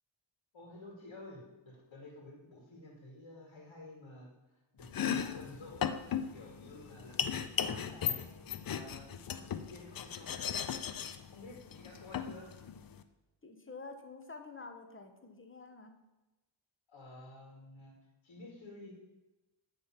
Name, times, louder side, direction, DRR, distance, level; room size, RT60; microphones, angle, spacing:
voice 1, 0.5-6.0 6.3-12.5 16.9-17.9 18.2-18.9, left 2 dB, 70° left, -2 dB, 1.8 m, -52 dB
Domestic sounds home sounds, 4.8-13.0, left 8 dB, 50° left, 0.5 m, -37 dB
voice 2, 13.4-16.0, left 3 dB, 25° left, 6 dB, 0.9 m, -49 dB
8.6 x 3.4 x 5.7 m, 1.0 s
cardioid pair, 60°, 48 cm